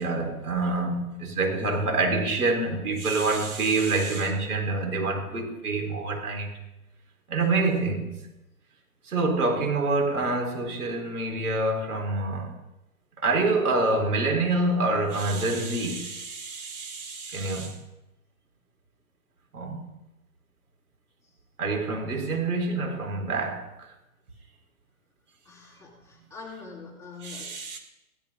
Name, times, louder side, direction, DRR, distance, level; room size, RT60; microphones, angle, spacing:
voice 1, 0.0-6.5 7.3-8.1 9.0-12.5 13.2-17.8 19.5-19.9 21.6-23.7 27.2-27.8, right 3 dB, 80° right, 4.7 m, -26 dB
voice 2, 25.4-27.5, left 4 dB, 5° left, 2.4 m, -44 dB
16.0 x 12.5 x 5.2 m
hypercardioid pair, 150°, 44 cm